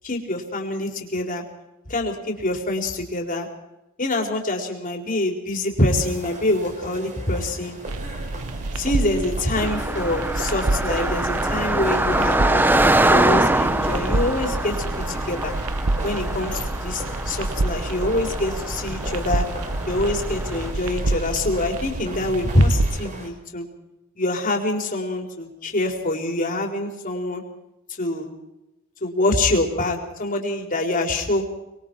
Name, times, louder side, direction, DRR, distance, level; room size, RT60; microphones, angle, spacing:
voice 1, 0.0-1.4 1.9-3.5 4.0-7.8 8.8-12.7 13.1-15.5 16.0-19.4 19.9-23.6 24.2-27.4 28.0-28.3 29.0-31.5, left 1 dB, 40° left, 2 dB, 4.2 m, -25 dB
sound 1, 5.9-23.3, right 1 dB, 35° right, 4.9 m, -37 dB
sound 2, 7.9-23.0, right 2 dB, 80° right, 1.0 m, -29 dB
Car passing by, 9.6-20.7, right 1 dB, 10° right, 0.9 m, -24 dB
25.5 x 22.0 x 4.7 m, 0.92 s
head